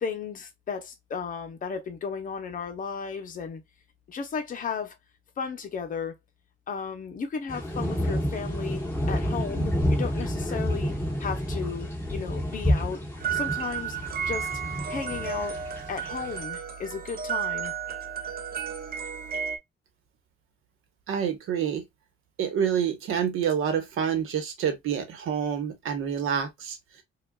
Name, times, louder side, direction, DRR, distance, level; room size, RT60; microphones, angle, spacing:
voice 1, 0.0-3.6 4.1-4.9 5.4-6.1 6.7-8.8 9.1-10.9 11.2-13.0 13.3-14.0 14.3-14.5 14.9-15.6 15.9-17.7, left 6 dB, 40° left, 0.9 m, -34 dB
sound 1, 7.5-16.4, equal, 10° left, 2.2 m, -29 dB
sound 2, 13.2-19.6, right 7 dB, 45° right, 0.7 m, -33 dB
voice 2, 21.1-21.8 22.4-26.8, right 8 dB, 85° right, 1.2 m, -27 dB
4.9 x 2.4 x 2.3 m
cardioid pair, 165°, 21 cm